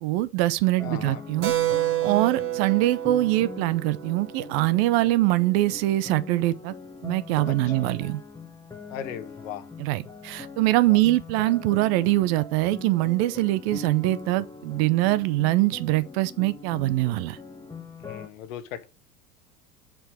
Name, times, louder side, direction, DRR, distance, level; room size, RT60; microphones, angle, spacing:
voice 1, 0.0-1.5 2.0-6.7 7.0-8.2 9.8-17.4, right 17 dB, 45° right, 0.6 m, -23 dB
voice 2, 0.8-1.2 7.5-7.9 8.9-9.7 10.8-11.0 18.0-18.9, left 9 dB, 60° left, 1.4 m, -38 dB
sound 1, 0.8-18.3, left 4 dB, 10° left, 1.0 m, -41 dB
Keyboard (musical), 1.4-5.5, right 13 dB, 30° right, 1.5 m, -29 dB
7.6 x 4.7 x 6.1 m
figure-of-eight pair, 75°, 45 cm